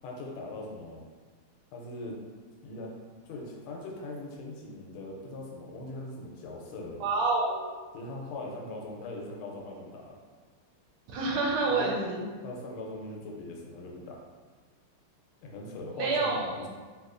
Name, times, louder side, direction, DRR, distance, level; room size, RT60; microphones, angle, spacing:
voice 1, 0.0-1.0 1.7-2.2 2.6-3.0 3.2-7.0 7.9-10.2 11.7-11.9 12.4-14.2 15.4-16.7, left 2 dB, 80° left, -1 dB, 1.5 m, -40 dB
voice 2, 7.0-7.6 11.1-12.2 16.0-16.4, right 3 dB, 85° right, -2 dB, 1.5 m, -27 dB
3.5 x 2.9 x 2.4 m, 1.4 s
omnidirectional pair, 2.3 m